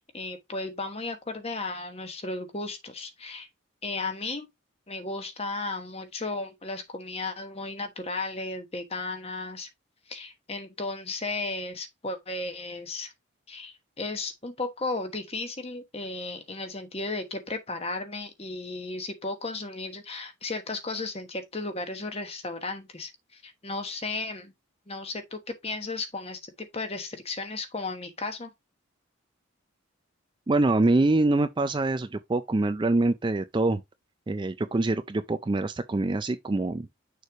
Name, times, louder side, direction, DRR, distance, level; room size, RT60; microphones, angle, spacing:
voice 1, 0.0-3.5 3.8-4.5 4.9-9.7 10.1-13.1 13.5-24.5 24.9-28.5, left 3 dB, 30° left, 1.2 m, -35 dB
voice 2, 30.5-33.8 34.3-36.9, right 2 dB, 20° right, 0.3 m, -25 dB
6.6 x 3.2 x 4.6 m
head